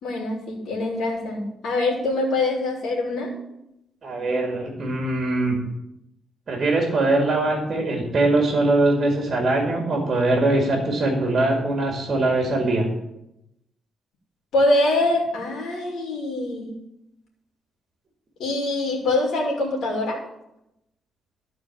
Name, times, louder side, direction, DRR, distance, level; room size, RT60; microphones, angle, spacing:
voice 1, 0.0-3.3 14.5-16.7 18.4-20.2, left 2 dB, 80° left, -2 dB, 2.6 m, -24 dB
voice 2, 4.0-5.6 6.5-12.9, right 2 dB, 40° right, 1 dB, 2.3 m, -22 dB
13.0 x 4.4 x 7.3 m, 0.85 s
cardioid pair, 125°, 0 cm